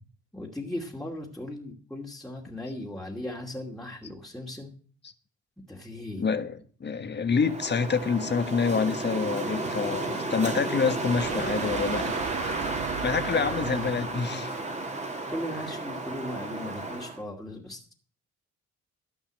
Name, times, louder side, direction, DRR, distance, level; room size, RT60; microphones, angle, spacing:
voice 1, 0.3-4.7 5.7-6.3 13.2-13.9 14.2-14.5 15.3-17.9, left 1 dB, ahead, 2.4 m, -37 dB
voice 2, 6.2-12.2 13.0-14.6, left 5 dB, 35° left, 1.5 m, -27 dB
Wind, 7.3-17.2, right 2 dB, 25° right, 2.5 m, -33 dB
sound 1, 7.3-14.3, right 9 dB, 70° right, 1.1 m, -39 dB
13.5 x 5.5 x 9.0 m
cardioid pair, 90°, 30 cm